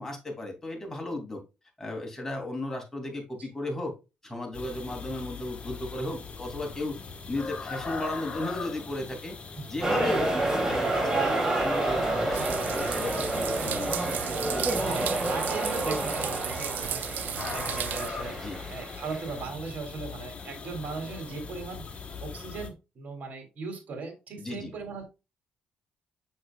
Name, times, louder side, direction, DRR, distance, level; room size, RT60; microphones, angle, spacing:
voice 1, 0.0-1.4 1.8-3.9 4.2-7.0 7.3-9.4 9.6-12.4 12.7-14.1 18.4-18.6 24.4-24.7, left 2 dB, 15° left, 2 dB, 2.9 m, -35 dB
sound 1, 4.5-22.7, left 5 dB, 40° left, 1.5 m, -41 dB
sound 2, 9.8-19.4, right 2 dB, 20° right, 3.1 m, -29 dB
sound 3, 12.3-18.1, right 10 dB, 70° right, 0.6 m, -34 dB
voice 2, 14.7-17.1 17.4-21.8 22.2-25.0, right 4 dB, 55° right, 3 dB, 3.3 m, -38 dB
6.8 x 6.2 x 2.4 m, 0.27 s
cardioid pair, 85°, 3 cm